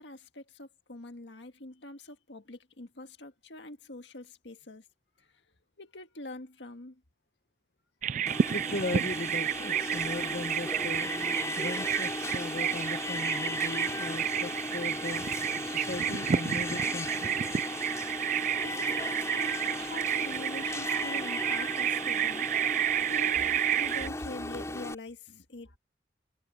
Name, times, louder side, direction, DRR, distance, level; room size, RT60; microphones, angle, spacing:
voice 1, 0.0-4.8 5.8-7.0 18.6-22.5 23.1-25.8, left 2 dB, 90° left, 1.8 m, -44 dB
Bird vocalization bird call bird song, 8.0-24.1, right 10 dB, 45° right, 0.3 m, -31 dB
Alarm, 8.3-24.9, left 2 dB, 15° left, 4.4 m, -36 dB
voice 2, 8.5-11.1 11.6-15.3 15.6-17.4, left 2 dB, 65° left, 1.1 m, -38 dB
head